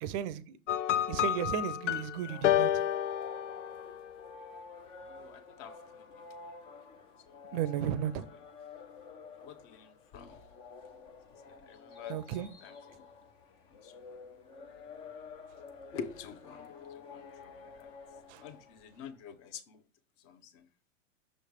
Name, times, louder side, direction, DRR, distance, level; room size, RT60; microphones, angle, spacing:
voice 1, 0.0-0.6 1.1-2.7 7.5-8.3 12.1-12.5 18.3-18.4, right 10 dB, 35° right, 0.6 m, -34 dB
sound 1, 0.7-4.1, left 11 dB, 65° left, 0.5 m, -30 dB
sound 2, 2.1-19.1, left 4 dB, 15° left, 0.3 m, -50 dB
voice 2, 5.1-6.0 9.4-10.4 11.5-12.2 12.6-12.7 13.8-14.2 15.9-17.9 18.4-19.8 20.2-20.7, left 7 dB, 35° left, 0.8 m, -47 dB
6.4 x 3.3 x 4.8 m
hypercardioid pair, 120°, 39 cm